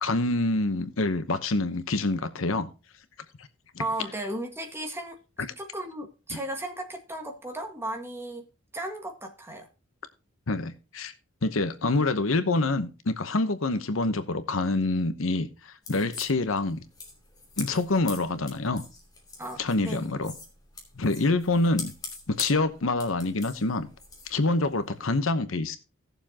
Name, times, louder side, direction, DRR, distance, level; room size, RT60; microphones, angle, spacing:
voice 1, 0.0-2.7 3.7-3.8 10.5-11.1 11.4-16.8 17.6-18.8 19.6-20.3 21.0-21.9 22.3-23.9 24.3-25.8, left 2 dB, 75° left, 1.0 m, -26 dB
voice 2, 3.8-5.2 5.6-8.5 8.7-9.7 19.4-20.1, right 1 dB, 10° right, 1.7 m, -35 dB
sound 1, 15.8-25.0, left 3 dB, 20° left, 2.8 m, -43 dB
17.5 x 7.1 x 2.9 m
head